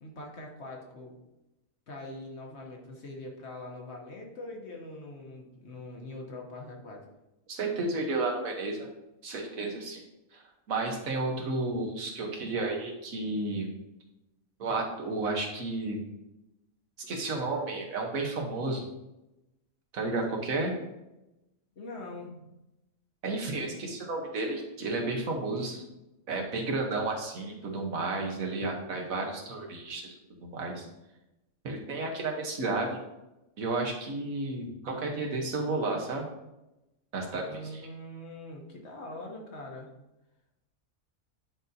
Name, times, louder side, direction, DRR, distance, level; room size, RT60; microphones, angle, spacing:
voice 1, 0.0-1.2 1.9-7.0 21.8-22.5 37.5-39.9, left 1 dB, 55° left, 0 dB, 1.3 m, -43 dB
voice 2, 7.5-8.9 9.2-10.0 10.3-13.7 14.6-16.0 17.0-18.9 19.9-20.7 23.2-25.8 26.3-30.9 31.6-33.0 33.6-36.3 37.1-37.8, right 3 dB, 75° right, 1 dB, 1.5 m, -32 dB
9.5 x 3.9 x 2.7 m, 0.93 s
omnidirectional pair, 1.5 m